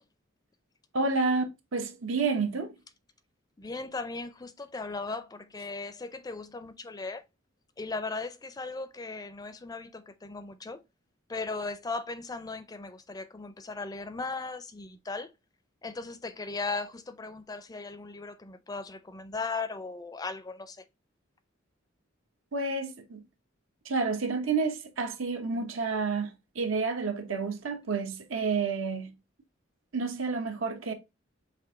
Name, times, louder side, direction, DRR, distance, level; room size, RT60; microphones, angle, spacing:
voice 1, 0.9-1.4 1.7-2.7 22.5-23.2 23.8-29.1 29.9-30.9, right 4 dB, 85° right, 0.9 m, -30 dB
voice 2, 3.6-7.2 7.8-10.8 11.3-15.3 15.8-20.8, left 3 dB, 20° left, 0.4 m, -37 dB
5.9 x 2.6 x 3.5 m
head